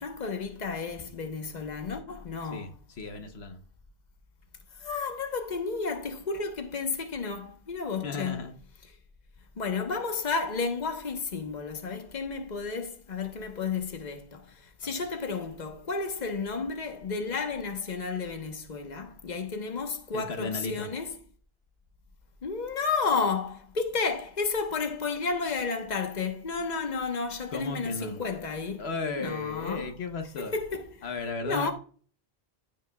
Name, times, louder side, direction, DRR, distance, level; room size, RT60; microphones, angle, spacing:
voice 1, 0.0-2.7 4.8-8.4 9.6-21.1 22.4-28.9 29.2-29.9 30.4-30.9 31.5-31.7, left 4 dB, 45° left, 1.2 m, -32 dB
voice 2, 2.5-3.6 8.0-8.5 14.8-15.0 20.1-20.9 27.5-28.2 28.8-30.6 31.0-31.7, left 4 dB, 80° left, 1.2 m, -35 dB
15.0 x 5.4 x 2.3 m
omnidirectional pair, 1.1 m